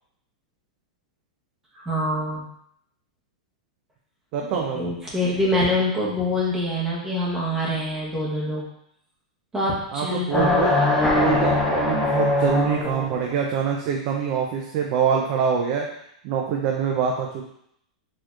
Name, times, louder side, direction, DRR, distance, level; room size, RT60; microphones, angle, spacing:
voice 1, 1.7-2.5 4.5-8.6 9.5-10.8, left 1 dB, 15° right, -5 dB, 1.0 m, -25 dB
voice 2, 4.3-4.9 9.9-10.7 11.1-15.9 16.2-17.4, right 7 dB, 50° right, 0 dB, 0.5 m, -25 dB
sound 1, 10.3-13.2, left 2 dB, 10° left, 0.6 m, -21 dB
4.1 x 2.9 x 2.4 m, 0.73 s
hypercardioid pair, 120°, 4 cm